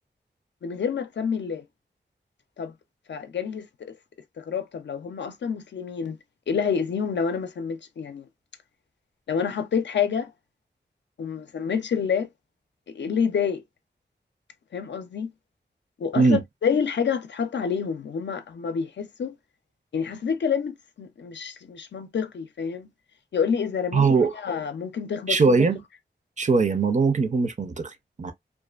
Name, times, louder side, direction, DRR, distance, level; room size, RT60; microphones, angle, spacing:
voice 1, 0.6-1.6 2.6-2.7 3.1-4.0 4.4-6.2 6.5-8.2 9.3-10.3 11.2-12.3 12.9-13.6 14.7-15.3 16.0-19.3 19.9-22.9 23.3-24.1 24.4-25.4, left 6 dB, 75° left, 0.4 m, -28 dB
voice 2, 23.9-24.3 25.3-25.8 26.4-28.3, right 4 dB, 40° right, 0.5 m, -21 dB
2.4 x 2.3 x 2.3 m
wide cardioid pair, 80°, 18 cm